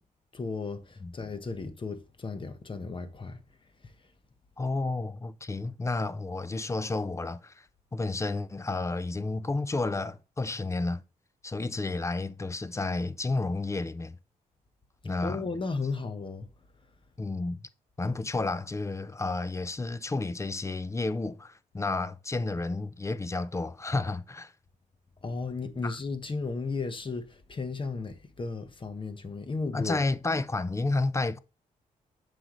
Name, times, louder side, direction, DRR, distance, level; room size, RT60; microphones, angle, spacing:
voice 1, 0.3-3.4 15.2-16.5 25.2-30.0, left 4 dB, 35° left, 1.1 m, -34 dB
voice 2, 4.6-7.7 7.9-11.0 11.4-14.2 15.0-15.4 17.2-17.6 18.0-24.5 25.8-26.0 29.7-31.4, left 3 dB, 20° left, 0.5 m, -31 dB
7.7 x 5.1 x 3.1 m
cardioid pair, 90°, 14 cm